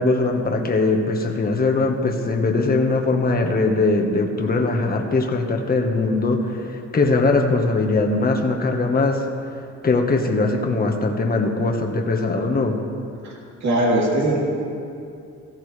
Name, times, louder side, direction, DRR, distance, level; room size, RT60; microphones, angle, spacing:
voice 1, 0.0-9.2 9.8-12.8, left 3 dB, 30° left, 2 dB, 1.4 m, -21 dB
voice 2, 13.6-14.4, right 1 dB, 65° right, -3 dB, 3.1 m, -20 dB
16.5 x 14.0 x 3.3 m, 2.5 s
cardioid pair, 90°, 30 cm